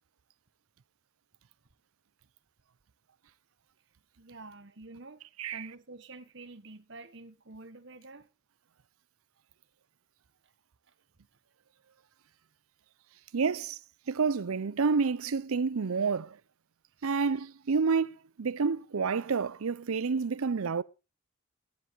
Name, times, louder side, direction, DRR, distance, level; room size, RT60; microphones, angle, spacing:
voice 1, 4.2-5.2 5.5-8.3 10.4-10.5, right 2 dB, 55° right, 1.1 m, -48 dB
voice 2, 13.3-13.8 14.1-16.4 17.0-20.8, right 5 dB, 80° right, 0.6 m, -29 dB
12.5 x 10.5 x 4.5 m
head